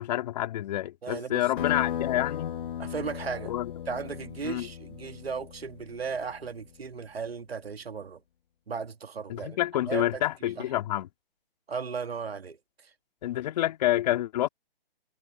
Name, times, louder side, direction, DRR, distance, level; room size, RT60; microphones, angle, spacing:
voice 1, 0.0-2.6 3.4-3.7 4.4-4.7 9.3-11.1 13.2-14.5, left 14 dB, 45° left, 3.0 m, -28 dB
voice 2, 1.0-1.4 2.8-3.5 3.9-8.2 8.7-9.6 9.9-10.2 11.7-12.6, right 5 dB, 85° right, 1.9 m, -35 dB
sound 1, 1.6-6.7, left 10 dB, 60° left, 1.6 m, -36 dB
hypercardioid pair, 145°, 30 cm